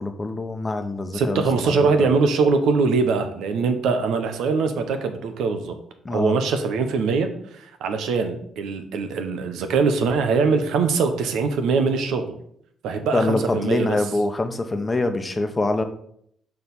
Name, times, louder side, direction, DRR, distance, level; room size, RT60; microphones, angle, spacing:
voice 1, 0.0-2.1 6.0-6.4 13.1-15.8, left 2 dB, 20° left, 7 dB, 0.9 m, -25 dB
voice 2, 1.1-5.8 6.1-7.3 7.5-12.4 12.8-14.0, right 4 dB, 80° right, 7 dB, 0.9 m, -22 dB
6.4 x 4.7 x 5.4 m, 0.67 s
cardioid pair, 90°, 0 cm